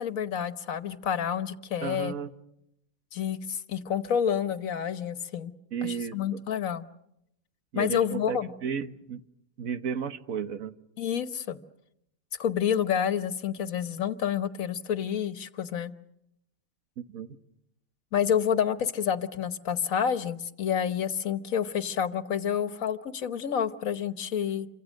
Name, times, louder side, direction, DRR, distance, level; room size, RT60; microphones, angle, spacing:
voice 1, 0.0-2.1 3.1-5.5 5.8-6.9 7.7-8.5 11.0-11.6 12.3-15.9 18.1-24.7, left 8 dB, 80° left, 12 dB, 1.5 m, -29 dB
voice 2, 1.8-2.3 5.7-6.4 7.7-9.2 9.6-10.8 17.0-17.3, right 7 dB, 85° right, 10 dB, 1.6 m, -33 dB
28.5 x 25.0 x 6.4 m, 0.81 s
omnidirectional pair, 1.4 m